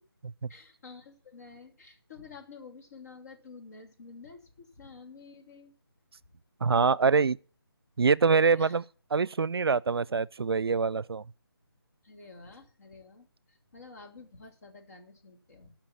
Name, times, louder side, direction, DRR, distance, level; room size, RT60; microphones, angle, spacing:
voice 1, 0.5-5.7 8.5-8.8 12.0-15.7, left 4 dB, 40° left, 2.7 m, -50 dB
voice 2, 6.6-7.4 8.0-8.8 9.1-11.2, right 5 dB, 75° right, 0.5 m, -24 dB
14.5 x 5.9 x 7.6 m
figure-of-eight pair, 160°, 13 cm